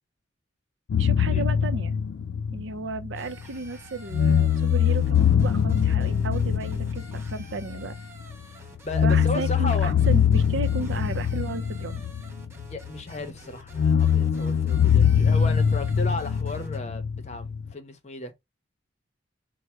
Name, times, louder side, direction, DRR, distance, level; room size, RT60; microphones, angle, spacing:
sound 1, 0.9-3.7 4.1-8.3 8.9-13.0 13.7-17.7, left 8 dB, 85° left, 0.3 m, -23 dB
voice 1, 1.0-1.9 2.5-7.9 9.0-12.0, right 3 dB, 70° right, 0.6 m, -34 dB
sound 2, 3.1-16.8, right 2 dB, 15° right, 1.0 m, -49 dB
voice 2, 8.8-9.9 12.7-18.3, left 2 dB, 35° left, 0.7 m, -35 dB
4.6 x 2.2 x 4.3 m
head